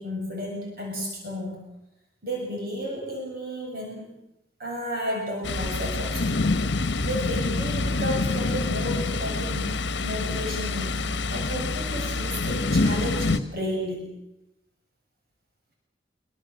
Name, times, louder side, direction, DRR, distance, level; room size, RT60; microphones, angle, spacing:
voice 1, 0.0-1.7 2.2-4.2 4.6-9.7 10.0-14.1, equal, 55° right, -1 dB, 7.2 m, -33 dB
Thunder, 5.4-13.4, left 3 dB, 85° left, 1.1 m, -26 dB
26.0 x 24.5 x 7.7 m, 0.88 s
head